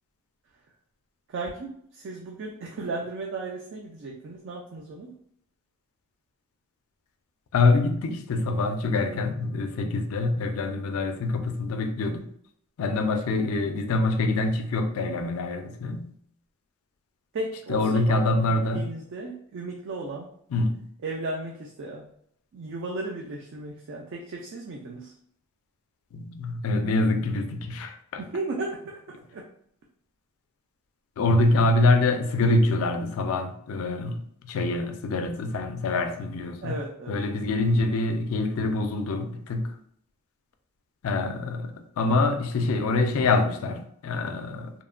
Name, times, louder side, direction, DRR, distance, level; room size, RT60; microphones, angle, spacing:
voice 1, 1.3-5.1 17.3-17.8 18.1-20.3 21.0-22.0 22.5-25.1 28.2-29.0 29.3-29.4 36.6-37.2, right 2 dB, 55° right, -1 dB, 0.3 m, -35 dB
voice 2, 7.5-12.2 12.8-16.1 17.7-18.9 20.5-20.9 26.1-28.2 31.2-39.7 41.0-44.7, left 2 dB, 70° left, 6 dB, 0.3 m, -25 dB
2.9 x 2.1 x 2.4 m, 0.68 s
head